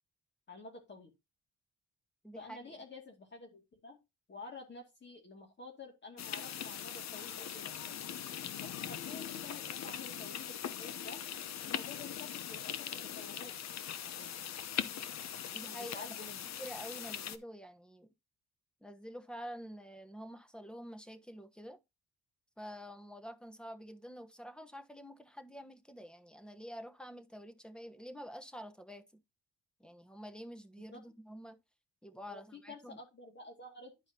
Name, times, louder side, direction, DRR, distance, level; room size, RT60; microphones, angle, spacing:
voice 1, 0.5-1.1 2.4-4.0 4.3-8.1 8.6-11.3 11.6-12.7 13.0-13.5 14.0-14.3 15.8-16.5 30.9-31.0 32.3-33.9, left 3 dB, 35° left, 2.4 m, -50 dB
voice 2, 2.2-2.8 15.5-16.0 16.6-18.1 18.8-21.8 22.6-29.0 29.8-31.6 32.0-33.0, equal, 5° left, 1.1 m, -48 dB
sound 1, 6.2-17.4, left 9 dB, 60° left, 1.0 m, -41 dB
11.5 x 4.9 x 2.9 m
cardioid pair, 90°, 30 cm